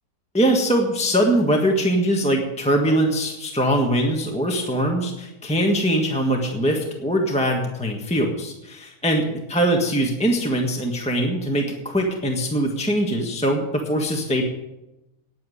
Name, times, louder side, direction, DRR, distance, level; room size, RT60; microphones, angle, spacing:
voice 1, 0.3-14.4, right 1 dB, 5° left, 1 dB, 1.2 m, -22 dB
9.7 x 8.7 x 9.8 m, 0.97 s
omnidirectional pair, 2.2 m